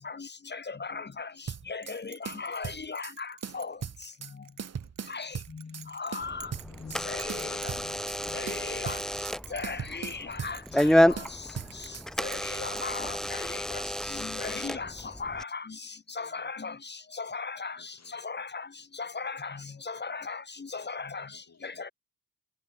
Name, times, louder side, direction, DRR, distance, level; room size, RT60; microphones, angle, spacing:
voice 1, 0.0-1.3 1.7-3.3 3.5-3.7 5.1-5.3 5.9-6.5 7.1-7.7 8.3-9.0 9.5-11.2 12.2-13.6 14.2-14.9 15.2-15.6 16.2-16.7 17.2-17.8 18.1-18.7 19.0-19.6 19.9-20.4 20.7-21.3 21.6-21.9, left 4 dB, 30° left, 1.0 m, -37 dB
sound 1, 1.5-2.0 2.3-3.2 3.4-4.3 4.6-5.9 6.1-7.0 7.3-8.2 8.5-9.4 9.6-10.9 11.2-12.1, right 7 dB, 50° right, 1.2 m, -39 dB
Bell, 1.8-13.5, right 10 dB, 70° right, 0.9 m, -51 dB
voice 2, 4.2-4.8 11.8-12.5 16.2-16.5 19.0-19.2 19.5-19.9 20.7-20.8, right 3 dB, 20° right, 3.6 m, -66 dB
Door / Alarm, 6.2-15.4, equal, ahead, 0.3 m, -30 dB
voice 3, 6.7-8.0 11.0-11.3 14.8-15.1 17.8-18.1 19.6-19.7 19.9-20.0 21.3-21.9, left 5 dB, 50° left, 6.9 m, -61 dB
cardioid pair, 70°, 34 cm